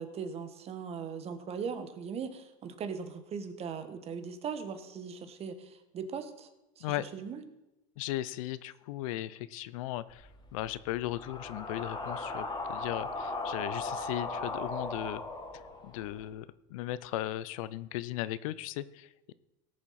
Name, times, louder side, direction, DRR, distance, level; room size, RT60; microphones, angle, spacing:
voice 1, 0.0-6.5 6.8-6.9 7.1-7.4, right 6 dB, 35° right, 9 dB, 1.4 m, -39 dB
voice 2, 8.0-15.2 15.8-19.3, left 14 dB, 80° left, 17 dB, 0.6 m, -37 dB
sound 1, 10.1-16.2, left 2 dB, 25° left, 2.0 m, -38 dB
18.0 x 7.2 x 4.2 m, 0.95 s
supercardioid pair, 115°, 17 cm